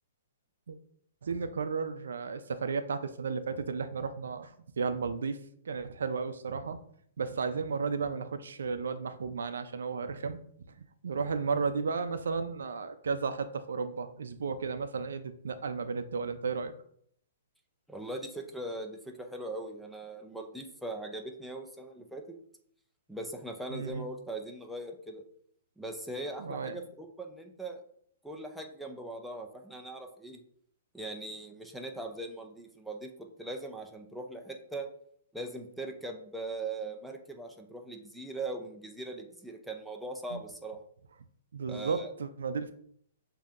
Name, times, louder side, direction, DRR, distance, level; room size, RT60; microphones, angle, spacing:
voice 1, 1.2-5.4 5.6-6.8 7.2-10.4 11.0-16.7 23.7-24.1 26.4-26.8 40.3-40.4 41.5-42.7, right 5 dB, 85° right, 10 dB, 0.4 m, -33 dB
voice 2, 17.9-22.2 23.1-25.2 25.8-27.8 28.2-30.4 30.9-34.9 35.3-40.8 41.7-42.1, right 2 dB, ahead, 2 dB, 0.5 m, -40 dB
7.0 x 2.8 x 2.4 m, 0.65 s
hypercardioid pair, 155°, 0 cm